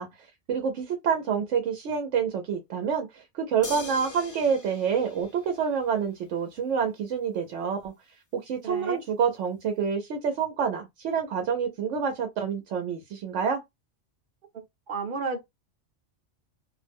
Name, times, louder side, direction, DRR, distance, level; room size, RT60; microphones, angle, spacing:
voice 1, 0.0-7.9 8.3-13.6, right 6 dB, 90° right, 0.9 m, -28 dB
sound 1, 3.6-6.1 7.8-7.9, left 4 dB, 25° left, 0.4 m, -42 dB
voice 2, 8.6-9.0 14.5-15.4, right 4 dB, 50° right, 0.8 m, -33 dB
2.5 x 2.0 x 3.3 m
omnidirectional pair, 1.2 m